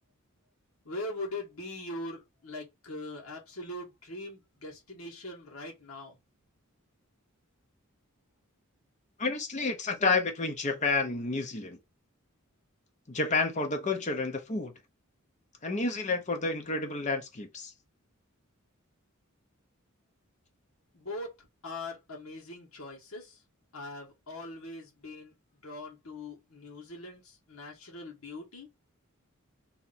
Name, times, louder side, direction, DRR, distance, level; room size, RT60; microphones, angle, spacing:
voice 1, 0.8-6.2 20.9-21.3 21.6-23.4 23.7-25.3 25.6-28.7, left 2 dB, 80° left, 1.5 m, -41 dB
voice 2, 9.2-11.8 13.1-14.7 15.6-17.7, left 3 dB, 35° left, 0.7 m, -30 dB
3.2 x 2.8 x 4.0 m
head